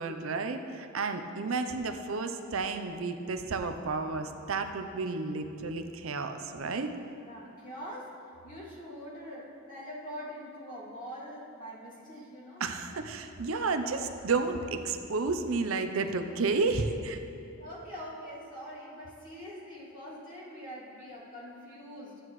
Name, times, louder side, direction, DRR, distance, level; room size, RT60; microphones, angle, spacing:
voice 1, 0.0-6.9 12.6-17.2, right 4 dB, 80° right, 7 dB, 0.7 m, -31 dB
voice 2, 7.2-8.1 8.4-12.6 17.6-22.2, equal, 40° left, -8 dB, 2.6 m, -44 dB
14.0 x 9.6 x 3.2 m, 2.7 s
head